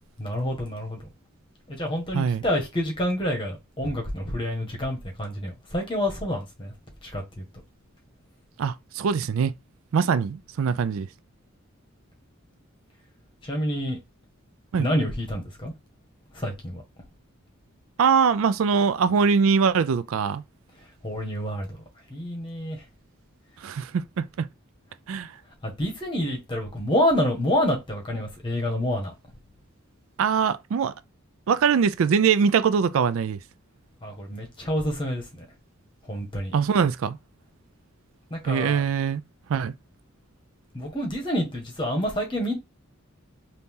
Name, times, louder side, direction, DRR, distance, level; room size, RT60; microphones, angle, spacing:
voice 1, 0.2-1.0 1.7-6.7 7.0-7.4 13.4-14.0 14.8-15.7 16.3-16.8 21.0-21.7 22.1-22.8 25.6-29.1 34.0-35.4 36.1-36.5 38.3-38.8 40.7-42.5, equal, 25° left, 1.5 m, -28 dB
voice 2, 8.6-9.5 9.9-11.1 14.7-14.9 18.0-20.4 23.6-24.5 25.1-25.3 30.2-30.9 31.5-33.4 36.5-37.2 38.4-39.2 39.5-39.7, right 6 dB, 70° right, 0.3 m, -22 dB
4.0 x 2.8 x 3.6 m
head